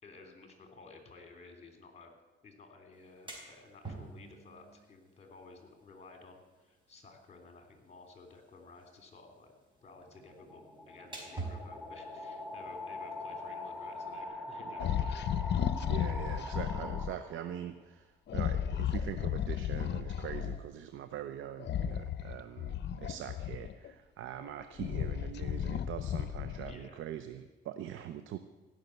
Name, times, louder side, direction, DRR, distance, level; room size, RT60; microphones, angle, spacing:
voice 1, 0.0-2.1 2.4-9.5 9.8-15.6 26.6-27.0, left 3 dB, 35° left, 4 dB, 3.2 m, -54 dB
sound 1, 2.9-14.2, right 3 dB, 25° right, 4.3 m, -50 dB
sound 2, 10.0-17.6, left 2 dB, 5° right, 2.3 m, -43 dB
sound 3, 14.8-17.1 18.3-20.6 21.6-23.9 24.5-26.9, left 9 dB, 60° left, 0.8 m, -34 dB
voice 2, 15.9-28.4, right 10 dB, 80° right, 10 dB, 0.7 m, -43 dB
16.0 x 6.5 x 9.3 m, 1.2 s
cardioid pair, 90°, 20 cm